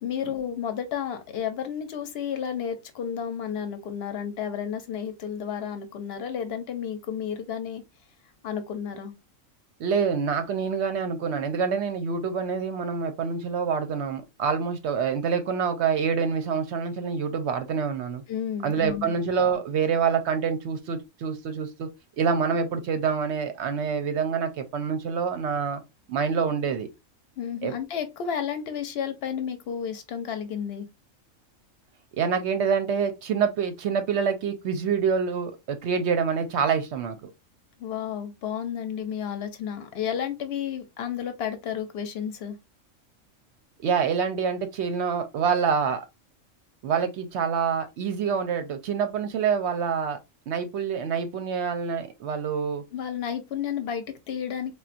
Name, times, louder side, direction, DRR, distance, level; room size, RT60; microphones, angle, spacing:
voice 1, 0.0-7.8 8.4-9.1 18.3-19.1 27.4-30.9 37.8-42.6 52.9-54.7, left 8 dB, 60° left, 0.8 m, -32 dB
voice 2, 9.8-18.2 18.6-21.9 22.2-25.8 26.1-26.9 27.6-27.7 32.2-37.3 43.8-46.0 46.8-50.2 50.5-52.8, right 6 dB, 65° right, 0.8 m, -26 dB
3.7 x 2.2 x 2.5 m
omnidirectional pair, 1.4 m